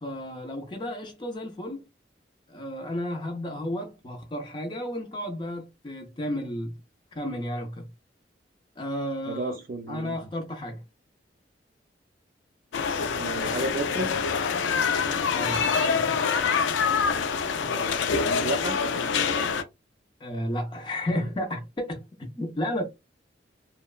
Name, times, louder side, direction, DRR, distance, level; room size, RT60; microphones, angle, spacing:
voice 1, 0.0-1.8 2.5-6.7 7.2-7.9 8.8-9.6 9.9-10.8 15.3-16.2 20.2-22.8, left 1 dB, 25° left, 0.4 m, -32 dB
voice 2, 9.3-10.2 13.1-14.1 17.6-18.7, right 2 dB, 50° right, 0.4 m, -32 dB
sound 1, 12.7-19.6, left 5 dB, 90° left, 0.4 m, -25 dB
2.8 x 2.1 x 2.3 m
head